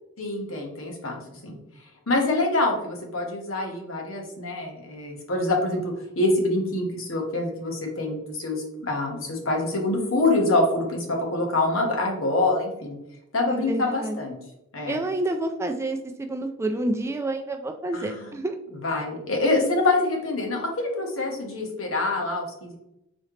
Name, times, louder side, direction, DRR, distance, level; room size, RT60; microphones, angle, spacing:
voice 1, 0.2-1.6 2.1-13.0 13.3-14.4 14.7-15.0 17.9-18.3 18.8-22.8, left 2 dB, 75° left, 1 dB, 1.2 m, -25 dB
voice 2, 13.5-14.2 14.9-18.6, right 2 dB, 15° right, 5 dB, 0.3 m, -28 dB
4.2 x 3.7 x 3.2 m, 0.84 s
head